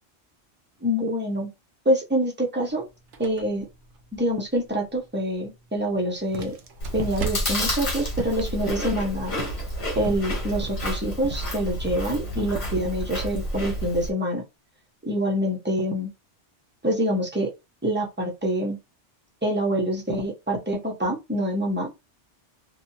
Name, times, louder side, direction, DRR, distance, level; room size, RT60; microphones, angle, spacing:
voice 1, 0.8-1.5 1.8-2.9 3.2-3.7 4.1-6.6 6.9-9.3 10.0-14.4 15.0-16.1 16.8-17.5 17.8-18.8 19.4-21.9, equal, 10° right, 0.6 m, -26 dB
sound 1, 2.7-7.9, right 5 dB, 85° right, 1.0 m, -41 dB
sound 2, 6.2-12.1, right 5 dB, 50° right, 0.4 m, -40 dB
Chewing mastication, 6.8-14.1, equal, 65° left, 1.2 m, -30 dB
2.9 x 2.2 x 2.6 m
omnidirectional pair, 1.2 m